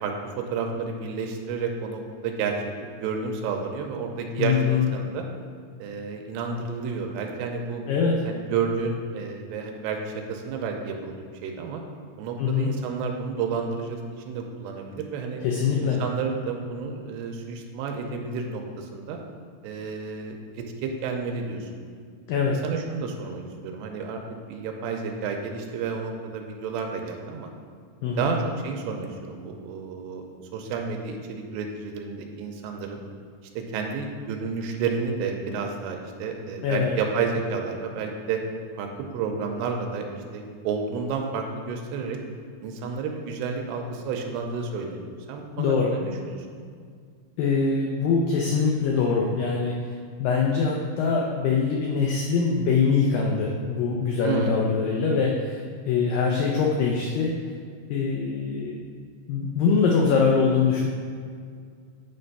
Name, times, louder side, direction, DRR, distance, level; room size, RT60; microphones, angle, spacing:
voice 1, 0.0-2.6 2.8-5.3 5.8-7.8 8.3-11.2 11.4-11.8 12.2-15.4 15.8-19.2 19.6-21.7 22.5-24.2 24.5-27.5 28.2-30.2 30.5-33.0 33.6-38.4 38.8-38.9 39.1-42.2 42.6-46.4 54.2-54.6, right 5 dB, 85° right, 3 dB, 2.7 m, -31 dB
voice 2, 4.4-4.9 7.9-8.2 12.4-12.7 15.4-16.0 22.3-22.5 28.0-28.3 36.6-37.0 45.6-45.9 47.4-49.8 50.2-55.6 55.9-57.4 57.9-58.8 59.3-60.8, left 5 dB, 90° left, -1 dB, 2.0 m, -23 dB
9.2 x 3.4 x 5.4 m, 2.1 s
omnidirectional pair, 4.9 m